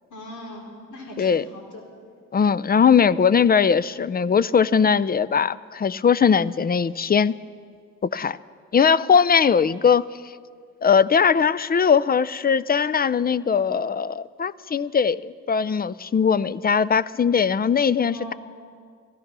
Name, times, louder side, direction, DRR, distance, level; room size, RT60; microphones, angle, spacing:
voice 1, 0.1-1.8 18.1-18.4, left 1 dB, 65° left, -2 dB, 4.5 m, -40 dB
voice 2, 2.3-7.3 8.0-8.4 8.7-10.1 10.8-18.3, left 6 dB, 30° left, 19 dB, 0.4 m, -20 dB
16.0 x 14.0 x 6.1 m, 2.1 s
supercardioid pair, 55°, 32 cm